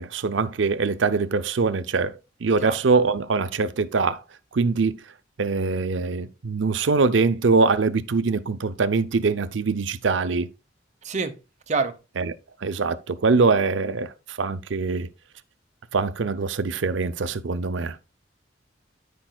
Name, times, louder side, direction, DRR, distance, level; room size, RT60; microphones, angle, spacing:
voice 1, 0.0-2.1 2.4-4.2 4.5-4.9 5.4-10.5 12.2-12.3 12.6-15.1 15.9-18.0, right 4 dB, 75° right, 0.6 m, -23 dB
voice 2, 11.0-11.4 11.7-12.0, right 4 dB, 40° right, 0.9 m, -26 dB
13.0 x 5.2 x 2.3 m
head